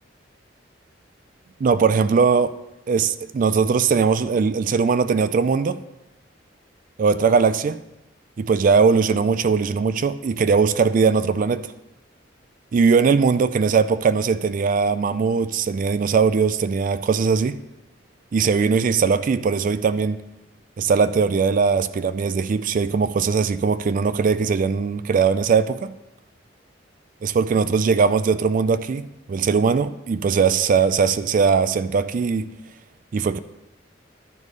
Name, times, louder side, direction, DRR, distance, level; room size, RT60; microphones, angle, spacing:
voice 1, 1.6-2.5 2.9-5.8 7.0-7.8 8.4-11.7 12.7-17.6 18.3-20.2 20.8-25.9 27.2-32.5 33.1-33.4, right 5 dB, 45° right, 0.3 m, -20 dB
11.0 x 4.9 x 5.3 m
head